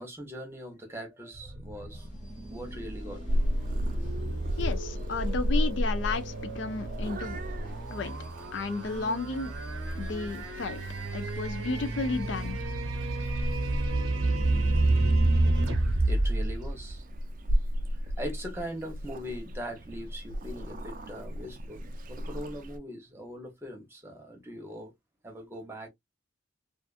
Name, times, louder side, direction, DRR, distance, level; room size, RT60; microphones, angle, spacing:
voice 1, 0.0-2.1 2.5-3.4 16.1-17.0 18.0-24.9 25.2-25.9, equal, 10° right, 0.8 m, -41 dB
sound 1, 1.3-17.6, right 2 dB, 90° right, 0.7 m, -30 dB
sound 2, 1.9-12.5, right 1 dB, 40° left, 1.0 m, -53 dB
Purr / Meow, 3.3-22.8, equal, 45° right, 0.3 m, -34 dB
voice 2, 4.6-7.4 7.9-8.2 8.5-9.5 10.0-10.8 11.1-12.6, left 3 dB, 65° left, 0.4 m, -33 dB
2.5 x 2.4 x 2.4 m
head